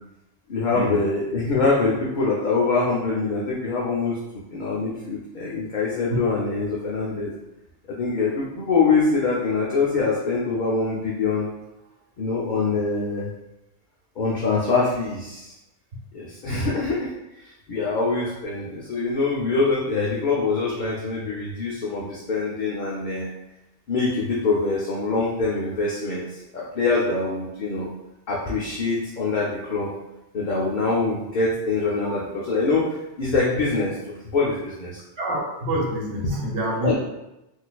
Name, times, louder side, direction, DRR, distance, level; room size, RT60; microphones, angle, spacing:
voice 1, 0.5-7.3 7.9-11.5 12.2-13.3 14.2-15.5 16.1-17.1 17.4-23.3 23.9-27.9 28.3-29.9 30.3-35.0 36.2-36.4 36.8-36.9, left 3 dB, 55° left, -5 dB, 0.6 m, -24 dB
voice 2, 35.2-36.9, right 1 dB, 80° right, -2 dB, 1.1 m, -27 dB
4.0 x 2.5 x 2.3 m, 0.94 s
omnidirectional pair, 1.2 m